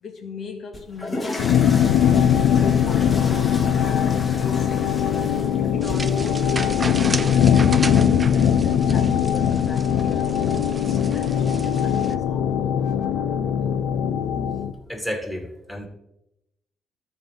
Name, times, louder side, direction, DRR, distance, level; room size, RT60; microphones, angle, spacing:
voice 1, 0.0-7.5 8.3-12.5, left 4 dB, 60° left, 1.4 m, -39 dB
sound 1, 0.7-6.7, left 1 dB, 25° left, 1.7 m, -34 dB
sound 2, 1.4-14.7, left 8 dB, 85° left, 0.5 m, -20 dB
sound 3, 5.8-12.1, right 3 dB, 25° right, 0.5 m, -34 dB
voice 2, 14.9-15.9, equal, 5° left, 2.4 m, -31 dB
13.5 x 4.5 x 3.4 m
cardioid pair, 90°, 0 cm